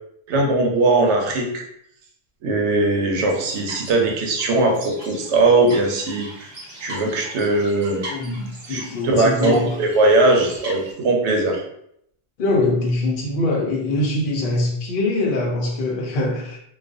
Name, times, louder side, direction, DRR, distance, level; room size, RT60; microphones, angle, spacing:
voice 1, 0.3-1.6 2.4-6.5 6.8-8.0 8.7-11.6, right 2 dB, 90° right, 1 dB, 0.9 m, -19 dB
sound 1, 3.3-10.9, equal, 35° right, 0.8 m, -39 dB
voice 2, 8.1-9.7 12.4-16.6, left 2 dB, 55° left, 0 dB, 0.7 m, -23 dB
2.4 x 2.2 x 2.5 m, 0.73 s
omnidirectional pair, 1.2 m